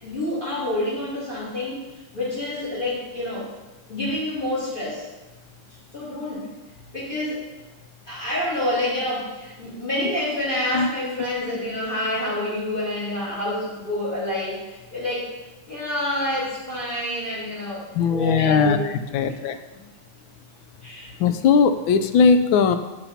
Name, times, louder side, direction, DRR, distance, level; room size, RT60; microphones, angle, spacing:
voice 1, 0.0-1.8 2.1-3.5 3.9-5.1 5.9-6.5 6.9-7.4 8.1-15.3 15.7-18.8 19.2-19.4 20.8-21.1, left 1 dB, 25° left, -7 dB, 4.0 m, -28 dB
voice 2, 17.9-18.8 19.1-19.6 21.2-22.8, left 5 dB, 85° left, 9 dB, 1.5 m, -18 dB
8.6 x 6.9 x 5.7 m, 1.1 s
omnidirectional pair, 2.1 m